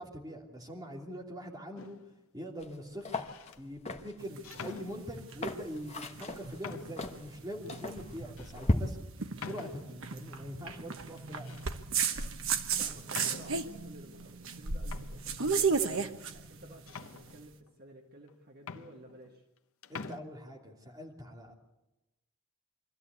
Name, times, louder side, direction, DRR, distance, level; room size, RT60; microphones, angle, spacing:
voice 1, 0.0-2.0 2.3-3.0 3.6-9.0 9.4-11.6 19.9-21.5, equal, 15° right, -1 dB, 2.9 m, -43 dB
sound 1, 1.8-2.2 3.0-3.6 4.4-5.4 6.1-6.2 6.6-7.1 7.7-7.8 8.4-8.6 9.4-10.1 11.2-11.7 12.0-12.3 13.1-13.7 14.5-14.6 14.9-16.1 16.9-17.7 18.3-18.4 18.6-19.6 19.8-20.2, left 5 dB, 70° left, 1.0 m, -46 dB
sound 2, 2.6-2.7 3.0-8.8, left 1 dB, 30° left, 1.1 m, -36 dB
sound 3, 4.2-17.4, right 5 dB, 60° right, 1.1 m, -35 dB
voice 2, 12.8-15.8 16.3-19.4, right 1 dB, 45° right, 2 dB, 1.7 m, -53 dB
24.0 x 14.0 x 8.2 m, 1.0 s
head